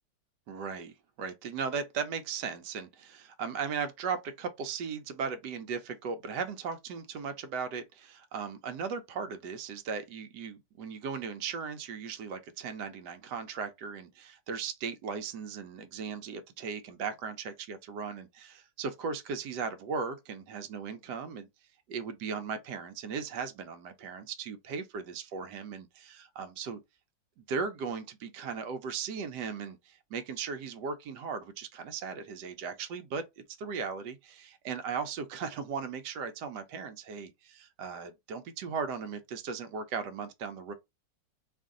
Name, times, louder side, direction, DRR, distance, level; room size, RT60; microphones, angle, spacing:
voice 1, 0.5-21.5 21.9-26.8 27.4-33.2 33.6-40.7, right 5 dB, 75° right, 1.2 m, -37 dB
3.0 x 2.5 x 3.6 m
omnidirectional pair, 1.9 m